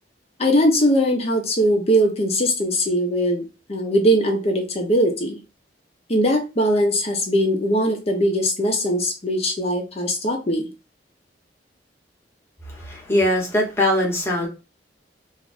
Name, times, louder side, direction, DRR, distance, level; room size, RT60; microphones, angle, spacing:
voice 1, 0.4-3.4 3.7-5.4 6.1-10.7, equal, 35° left, 0.8 m, -20 dB
voice 2, 12.7-14.5, left 1 dB, 15° left, 1.1 m, -21 dB
2.7 x 2.3 x 4.1 m
head